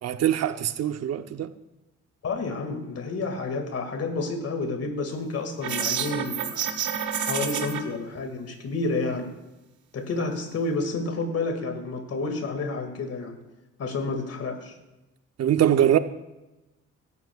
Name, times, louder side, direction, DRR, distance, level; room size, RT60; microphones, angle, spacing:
voice 1, 0.0-1.5 15.4-16.0, right 10 dB, 55° right, 0.8 m, -22 dB
voice 2, 2.2-6.6 7.2-9.3 9.9-13.4 13.8-14.7, left 3 dB, 55° left, 2.1 m, -30 dB
sound 1, 5.6-7.8, right 8 dB, 85° right, 1.2 m, -28 dB
16.0 x 12.5 x 2.4 m
cardioid pair, 90°, 30 cm